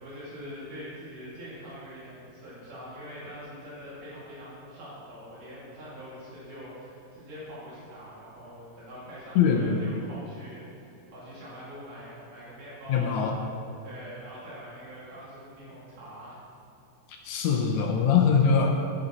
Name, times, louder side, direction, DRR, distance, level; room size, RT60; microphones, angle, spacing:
voice 1, 0.0-13.4 13.8-16.4, equal, 75° right, -9 dB, 3.8 m, -43 dB
voice 2, 9.3-9.9 12.9-13.3 17.1-18.7, left 6 dB, 75° left, 1 dB, 1.8 m, -23 dB
14.0 x 5.4 x 4.1 m, 2.6 s
omnidirectional pair, 3.8 m